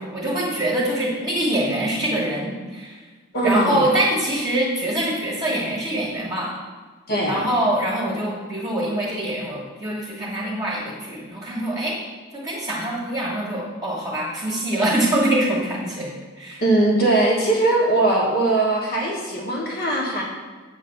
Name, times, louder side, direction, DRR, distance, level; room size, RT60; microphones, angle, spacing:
voice 1, 0.0-3.0 3.4-6.5 7.3-12.0 12.3-16.6, right 1 dB, 15° right, -7 dB, 1.3 m, -24 dB
voice 2, 3.3-3.8 7.1-7.5 16.6-20.2, right 2 dB, 50° left, -2 dB, 1.3 m, -20 dB
8.1 x 3.3 x 6.5 m, 1.4 s
head